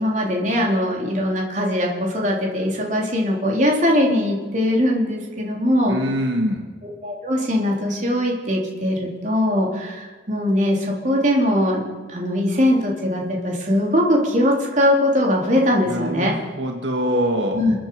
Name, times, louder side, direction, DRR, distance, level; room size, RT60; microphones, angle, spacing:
voice 1, 0.0-5.9 6.8-16.3 17.5-17.7, left 1 dB, 40° right, -1 dB, 3.3 m, -21 dB
voice 2, 5.9-6.7 15.8-17.6, equal, 80° right, 2 dB, 1.8 m, -24 dB
28.0 x 9.5 x 5.4 m, 1.5 s
head